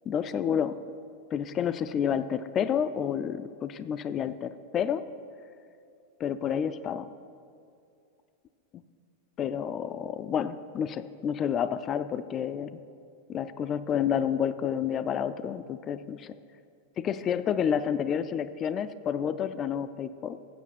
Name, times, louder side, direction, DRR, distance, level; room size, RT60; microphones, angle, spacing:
voice 1, 0.1-0.8 1.3-5.0 6.2-7.1 9.4-12.7 13.3-16.3 17.0-20.4, left 8 dB, 30° left, 12 dB, 0.3 m, -29 dB
8.5 x 6.0 x 7.3 m, 2.4 s
supercardioid pair, 130°, 0 cm